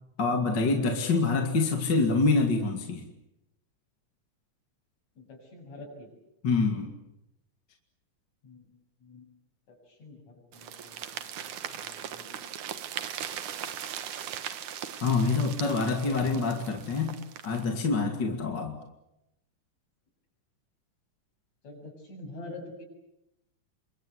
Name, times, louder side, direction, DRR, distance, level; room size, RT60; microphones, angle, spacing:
voice 1, 0.2-3.1 6.4-6.9 15.0-17.1 17.4-18.8, left 3 dB, 35° left, 4 dB, 2.8 m, -26 dB
voice 2, 5.2-6.1 8.4-8.6 9.0-9.3 9.7-12.5 18.3-18.6 21.6-22.8, left 2 dB, 60° left, 2 dB, 8.8 m, -47 dB
sound 1, 10.5-17.7, right 9 dB, 75° right, 2.9 m, -39 dB
28.0 x 24.5 x 8.1 m, 0.86 s
omnidirectional pair, 3.6 m